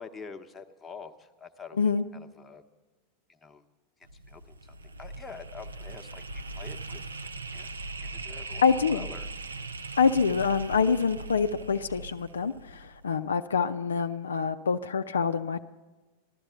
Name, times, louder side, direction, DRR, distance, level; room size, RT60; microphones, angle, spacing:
voice 1, 0.0-1.8 2.1-2.6 3.3-3.6 4.3-7.1 7.5-7.7 8.0-9.3, left 5 dB, 15° left, 4 dB, 0.9 m, -46 dB
voice 2, 1.7-2.0 8.6-9.1 10.0-15.6, left 5 dB, 70° left, 9 dB, 0.4 m, -26 dB
sound 1, 4.0-13.2, right 2 dB, 75° right, 0.6 m, -40 dB
15.0 x 12.0 x 6.7 m, 1.3 s
figure-of-eight pair, 90°, 0 cm